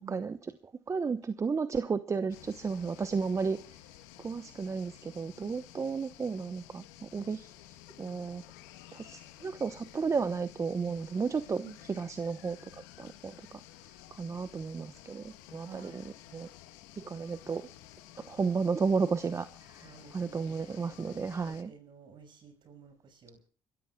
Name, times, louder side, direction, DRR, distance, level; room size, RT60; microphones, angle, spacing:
voice 1, 0.1-3.8 4.2-7.5 8.0-8.4 8.9-11.6 11.9-13.6 14.1-16.5 17.0-17.7 18.3-21.7, right 5 dB, 30° right, 12 dB, 1.0 m, -33 dB
sound 1, 2.3-21.6, left 13 dB, 90° left, 1.5 m, -53 dB
voice 2, 15.6-16.0 19.8-23.5, right 6 dB, 55° right, 8 dB, 6.1 m, -52 dB
30.0 x 14.0 x 2.3 m, 0.41 s
supercardioid pair, 70°, 9 cm